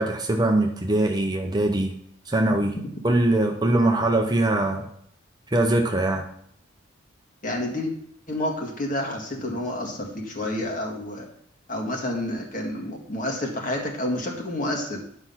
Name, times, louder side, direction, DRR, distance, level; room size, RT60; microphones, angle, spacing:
voice 1, 0.0-1.9 2.3-2.7 3.0-4.9 5.5-6.2, right 1 dB, 20° right, 3 dB, 0.8 m, -22 dB
voice 2, 7.4-7.9 8.3-11.3 11.7-15.0, left 1 dB, 40° left, 1 dB, 1.9 m, -29 dB
10.5 x 5.9 x 5.7 m, 0.69 s
head